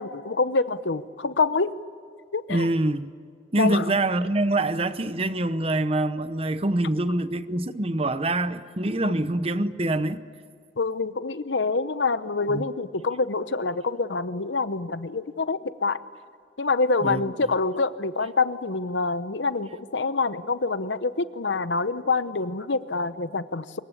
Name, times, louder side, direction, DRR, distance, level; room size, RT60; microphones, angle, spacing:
voice 1, 0.0-1.7 2.3-2.7 3.6-3.9 9.0-9.1 10.8-16.0 16.6-23.8, left 3 dB, 85° left, 0.9 m, -26 dB
voice 2, 2.5-3.1 3.5-10.2 12.5-12.6 17.0-17.2, right 2 dB, 35° right, 0.8 m, -25 dB
25.5 x 22.5 x 8.5 m
head